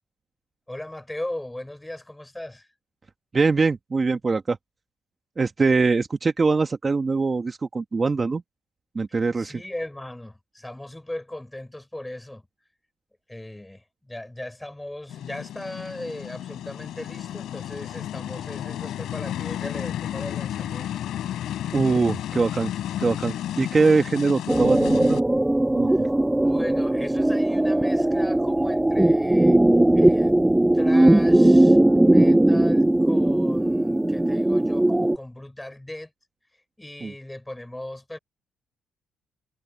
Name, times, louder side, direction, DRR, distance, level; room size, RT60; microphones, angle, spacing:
voice 1, 0.7-2.7 9.1-12.5 13.3-20.9 25.9-29.6 29.9-30.4 30.7-36.1 36.5-38.2, left 1 dB, 10° left, 5.3 m, -38 dB
voice 2, 3.3-4.6 5.4-8.4 8.9-9.6 21.7-22.7 23.0-25.2 25.7-26.1 37.0-37.1, right 4 dB, 30° right, 1.4 m, -23 dB
sound 1, 15.1-25.2, left 11 dB, 75° left, 4.5 m, -32 dB
sound 2, 24.5-35.2, right 1 dB, 10° right, 0.4 m, -19 dB
cardioid pair, 90°, 0 cm